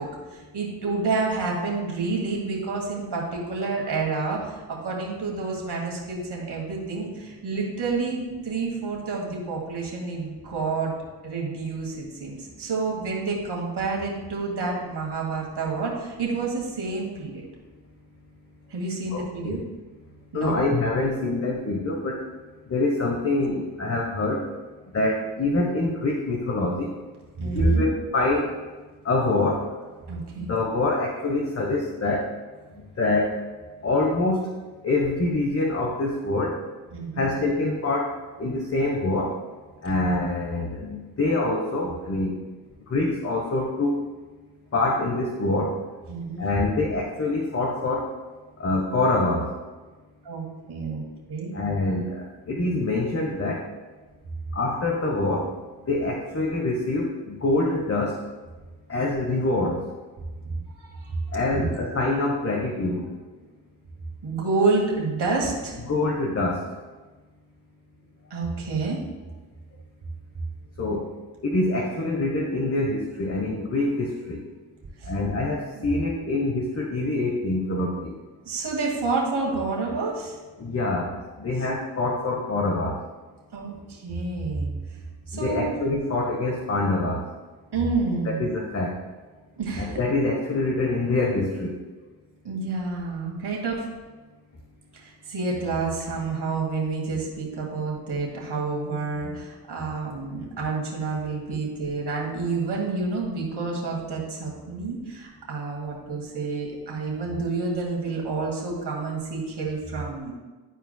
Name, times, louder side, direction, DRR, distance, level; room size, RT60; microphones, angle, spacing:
voice 1, 0.0-10.9 11.2-17.4 18.7-19.6 20.3-20.6 27.4-27.9 30.1-30.5 36.9-37.3 46.1-46.5 50.2-51.0 51.3-51.5 60.8-61.2 61.5-61.7 64.2-65.8 68.3-69.0 75.0-75.1 75.8-75.9 78.5-80.4 83.5-84.7 85.3-85.7 87.7-88.4 89.6-90.0 92.4-93.9 94.9-110.3, right 3 dB, 60° right, -2 dB, 2.1 m, -29 dB
voice 2, 19.1-19.7 20.3-22.3 22.7-24.5 24.9-26.9 27.4-28.6 29.0-29.7 30.3-32.3 32.7-33.4 33.8-34.5 34.8-36.6 37.2-39.4 39.8-42.4 42.9-44.1 44.7-45.8 46.4-48.1 48.6-49.5 51.5-53.6 54.5-55.5 55.9-58.2 58.9-59.8 61.3-63.1 65.8-66.7 70.8-71.1 71.4-74.4 75.1-78.2 80.6-83.0 85.3-87.3 88.2-89.0 89.8-91.8 99.2-99.4, left 2 dB, 30° left, 0 dB, 1.1 m, -25 dB
12.0 x 4.5 x 2.2 m, 1.3 s
supercardioid pair, 45°, 46 cm